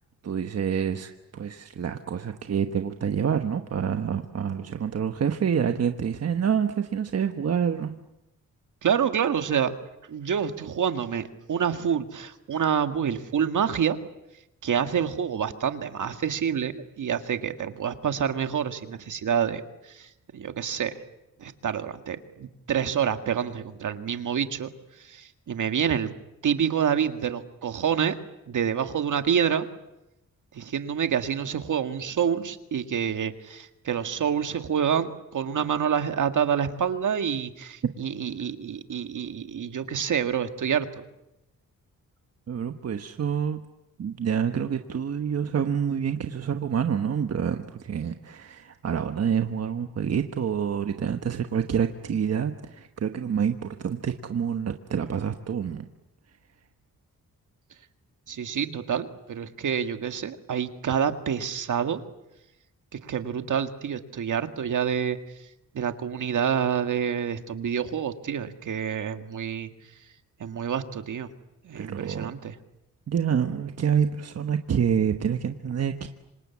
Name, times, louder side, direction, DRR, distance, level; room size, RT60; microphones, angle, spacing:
voice 1, 0.2-7.9 37.8-37.9 42.5-43.6 44.0-55.8 71.8-72.3 73.1-76.1, right 7 dB, 50° right, 7 dB, 1.2 m, -27 dB
voice 2, 8.8-9.7 10.1-14.0 14.6-21.0 21.4-24.7 25.0-26.1 26.4-28.2 28.5-29.7 30.5-41.0 58.3-62.0 62.9-65.2 65.7-69.7 70.4-71.3 71.6-72.6, right 8 dB, 65° right, 8 dB, 1.9 m, -27 dB
26.5 x 26.5 x 8.5 m, 0.90 s
wide cardioid pair, 150°, 33 cm